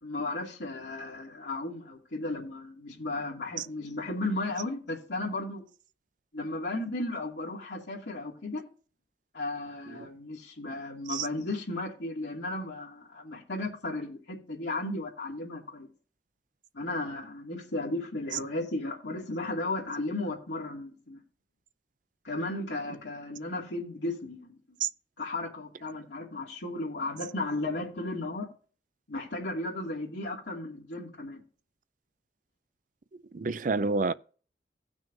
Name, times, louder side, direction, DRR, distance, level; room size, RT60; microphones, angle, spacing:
voice 1, 0.0-5.6 6.3-8.6 9.3-15.9 16.7-21.2 22.2-24.6 25.2-28.5 29.1-31.4, left 2 dB, 75° left, 2.4 m, -35 dB
voice 2, 33.3-34.1, right 4 dB, 45° right, 0.5 m, -29 dB
17.0 x 6.1 x 2.6 m
head